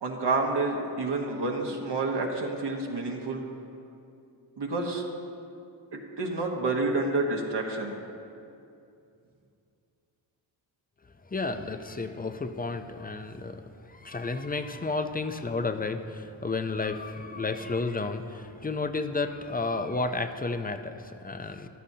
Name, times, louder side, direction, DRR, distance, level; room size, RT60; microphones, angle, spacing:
voice 1, 0.0-3.4 4.6-5.0 5.9-8.0, right 3 dB, 65° right, 0 dB, 1.3 m, -29 dB
voice 2, 11.2-21.7, left 3 dB, 20° left, 8 dB, 0.6 m, -32 dB
14.0 x 12.0 x 2.8 m, 2.6 s
cardioid pair, 70°, 45 cm